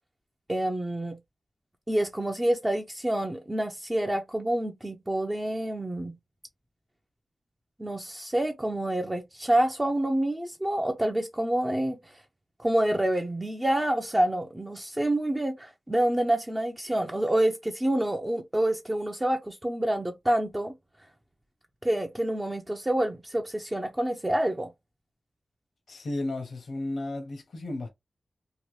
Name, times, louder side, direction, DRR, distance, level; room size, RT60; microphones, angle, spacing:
voice 1, 0.5-1.2 1.9-6.1 7.8-12.0 12.6-20.7 21.8-24.7, right 1 dB, 20° right, 0.5 m, -27 dB
voice 2, 25.9-27.9, left 2 dB, 80° left, 0.8 m, -33 dB
2.9 x 2.2 x 3.1 m
wide cardioid pair, 70°, 0 cm